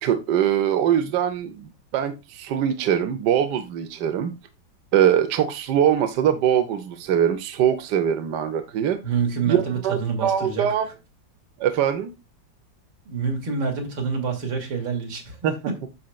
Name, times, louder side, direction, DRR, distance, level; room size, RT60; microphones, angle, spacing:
voice 1, 0.0-4.3 4.9-9.0 9.4-10.9 11.6-12.1 15.4-15.5, right 9 dB, 70° right, 1.3 m, -22 dB
voice 2, 9.0-10.7 13.1-15.9, right 5 dB, 90° right, 2.7 m, -27 dB
8.4 x 6.5 x 2.2 m
omnidirectional pair, 2.0 m